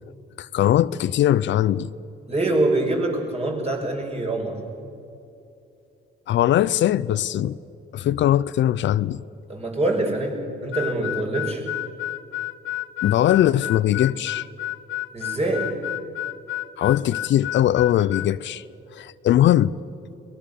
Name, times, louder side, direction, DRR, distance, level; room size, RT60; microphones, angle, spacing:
voice 1, 0.4-1.9 6.3-7.6 7.9-9.2 13.0-14.5 16.8-18.6 18.9-19.7, left 12 dB, 70° left, 0.6 m, -20 dB
voice 2, 2.3-4.6 9.5-11.6 15.1-15.7, right 2 dB, 30° right, 5.8 m, -24 dB
Harmonica, 10.7-18.3, left 15 dB, 90° left, 0.9 m, -30 dB
23.0 x 19.5 x 6.9 m
cardioid pair, 90°, 20 cm